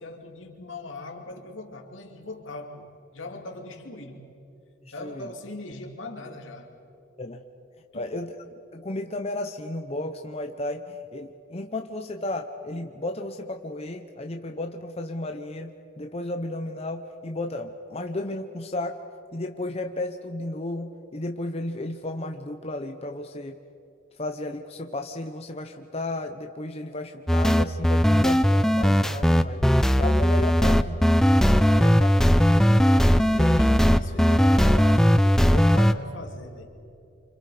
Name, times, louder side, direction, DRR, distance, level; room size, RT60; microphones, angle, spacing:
voice 1, 0.0-2.9 3.1-4.3 4.9-6.7 7.9-8.1 31.6-32.2 32.5-36.7, left 2 dB, 75° left, 2 dB, 2.7 m, -40 dB
voice 2, 5.0-5.3 7.2-7.4 7.9-8.4 8.7-19.0 19.3-23.6 24.2-29.6 30.0-31.2 31.7-32.1, left 2 dB, 30° left, 4 dB, 0.8 m, -33 dB
sound 1, 27.3-35.9, equal, ahead, 0.5 m, -18 dB
29.0 x 26.5 x 5.0 m, 2.8 s
head